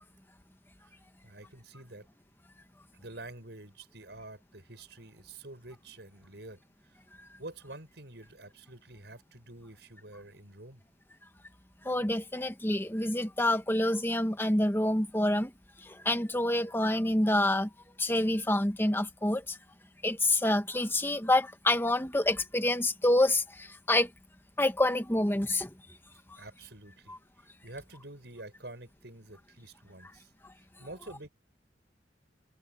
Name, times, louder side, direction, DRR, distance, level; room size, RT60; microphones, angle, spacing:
voice 1, 1.2-2.1 2.9-7.0 7.4-10.8 26.4-30.3 30.6-31.3, right 2 dB, 65° right, 6.6 m, -48 dB
voice 2, 11.8-15.5 15.8-17.7 18.0-19.6 20.0-24.1 24.6-25.7 27.1-27.2, left 1 dB, 15° left, 1.6 m, -27 dB
head